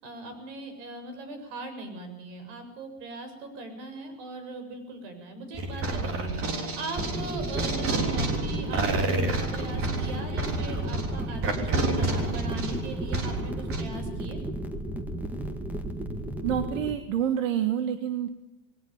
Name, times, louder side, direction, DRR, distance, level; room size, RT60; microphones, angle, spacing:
voice 1, 0.0-14.4, right 2 dB, 60° right, 7 dB, 7.4 m, -39 dB
sound 1, 5.5-13.8, right 2 dB, 35° right, 3.6 m, -29 dB
sound 2, 7.0-16.9, right 1 dB, 5° right, 1.9 m, -34 dB
voice 2, 16.4-18.3, right 9 dB, 85° right, 10 dB, 1.8 m, -27 dB
21.0 x 18.5 x 7.3 m, 0.99 s
supercardioid pair, 145°, 38 cm